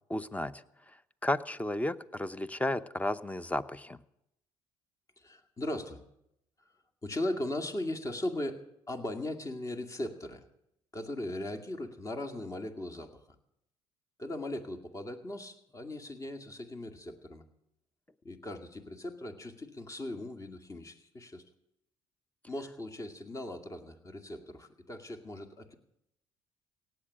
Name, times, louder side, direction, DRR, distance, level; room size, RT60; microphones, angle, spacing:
voice 1, 0.1-1.0 1.2-4.0, left 1 dB, 10° left, 15 dB, 0.8 m, -33 dB
voice 2, 5.2-6.0 6.6-6.7 7.0-10.5 10.9-13.3 14.2-17.5 18.2-21.4 22.5-25.8, left 1 dB, 30° left, 6 dB, 2.2 m, -38 dB
17.5 x 7.9 x 10.0 m, 0.81 s
supercardioid pair, 70°, 11 cm